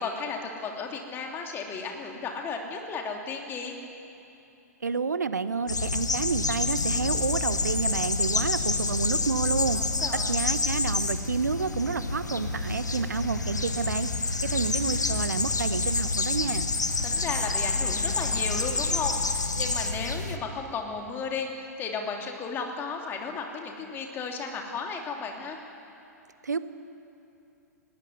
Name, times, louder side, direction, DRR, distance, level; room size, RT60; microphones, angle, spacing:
voice 1, 0.0-3.7 9.7-10.4 17.0-25.6, left 5 dB, 25° left, 2 dB, 3.0 m, -34 dB
voice 2, 4.8-9.8 10.1-14.1 14.4-16.7 26.4-26.6, right 5 dB, 75° right, 13 dB, 0.9 m, -29 dB
sound 1, 5.7-20.4, left 3 dB, 80° left, 1.4 m, -28 dB
19.5 x 17.5 x 9.8 m, 2.8 s
figure-of-eight pair, 110°, 9 cm